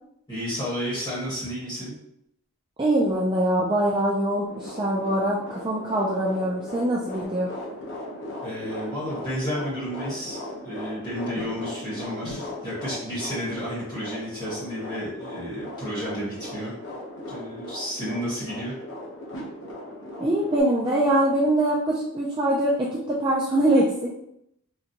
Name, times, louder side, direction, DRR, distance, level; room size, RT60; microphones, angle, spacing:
voice 1, 0.3-2.0 8.4-16.7 17.3-18.8, equal, 20° left, -8 dB, 1.2 m, -32 dB
voice 2, 2.8-7.5 20.2-24.1, right 1 dB, 20° right, -5 dB, 0.3 m, -23 dB
sound 1, 4.4-20.6, left 1 dB, 60° left, 0.9 m, -38 dB
3.8 x 2.2 x 2.8 m, 0.75 s
head